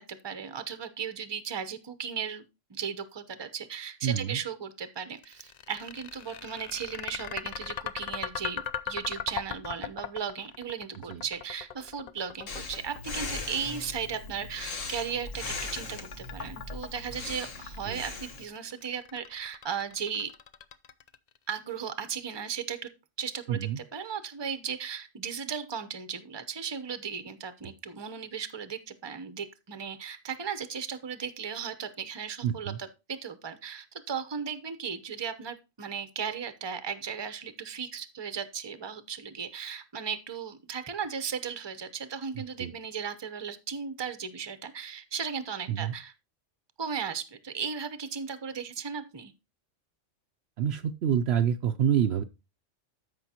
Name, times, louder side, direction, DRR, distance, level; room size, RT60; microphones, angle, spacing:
voice 1, 0.0-2.4 2.7-20.3 21.5-22.9 23.2-46.1 46.8-49.3, right 7 dB, 25° right, 11 dB, 0.7 m, -36 dB
voice 2, 4.0-4.4 11.1-11.2 17.9-18.0 23.5-23.8 32.4-32.8 42.4-42.7 45.7-45.9 50.6-52.2, right 9 dB, 65° right, 9 dB, 0.8 m, -27 dB
sound 1, 5.2-21.4, left 8 dB, 55° left, 0.4 m, -39 dB
Breathing, 12.5-18.5, left 3 dB, 90° left, 1.6 m, -39 dB
14.0 x 5.5 x 2.9 m, 0.27 s
omnidirectional pair, 1.3 m